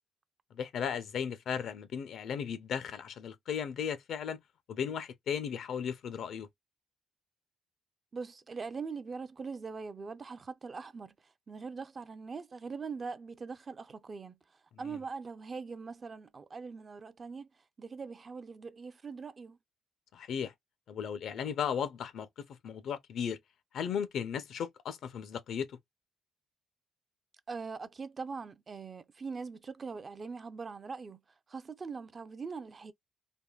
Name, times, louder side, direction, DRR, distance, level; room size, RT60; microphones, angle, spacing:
voice 1, 0.5-4.4 4.7-6.5 14.8-15.0 20.1-20.5 20.9-23.4 23.7-25.7, left 7 dB, 70° left, 0.5 m, -36 dB
voice 2, 8.1-14.4 14.8-17.5 17.8-19.6 27.5-31.2 31.5-32.9, right 5 dB, 35° right, 0.4 m, -42 dB
3.5 x 2.1 x 2.3 m
cardioid pair, 90°, 0 cm